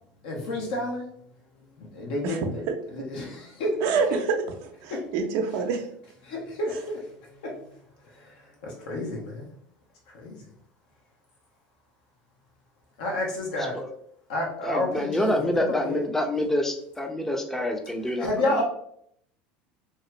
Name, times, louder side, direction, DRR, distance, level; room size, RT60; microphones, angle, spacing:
voice 1, 0.2-1.1 1.8-2.6 2.9-3.8 4.9-5.0 6.2-7.1 7.4-7.7 8.2-9.4 10.1-10.4 13.0-13.8 14.3-16.0 18.2-18.6, left 1 dB, 80° left, -1 dB, 1.1 m, -30 dB
voice 2, 3.8-4.3 4.6-5.9, right 5 dB, 65° right, 5 dB, 0.6 m, -26 dB
voice 3, 13.5-13.9 14.6-18.6, left 1 dB, 5° left, 3 dB, 0.6 m, -27 dB
3.0 x 2.4 x 3.0 m, 0.68 s
supercardioid pair, 95°, 5 cm